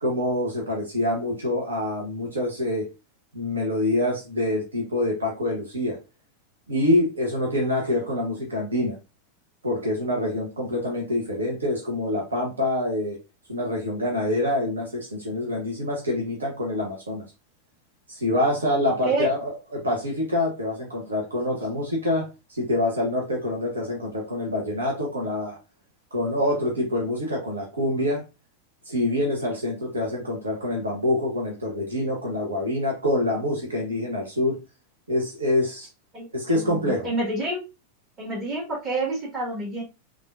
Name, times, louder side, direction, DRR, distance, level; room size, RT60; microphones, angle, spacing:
voice 1, 0.0-2.9 3.3-6.0 6.7-9.0 9.6-13.2 13.5-17.2 18.1-25.6 26.1-28.2 28.8-34.6 35.1-35.9 36.3-37.1, left 1 dB, 75° right, -1 dB, 0.8 m, -26 dB
voice 2, 36.1-37.6 38.2-39.8, right 2 dB, 30° right, -3 dB, 1.6 m, -28 dB
3.5 x 2.4 x 2.3 m, 0.27 s
figure-of-eight pair, 90°, 0 cm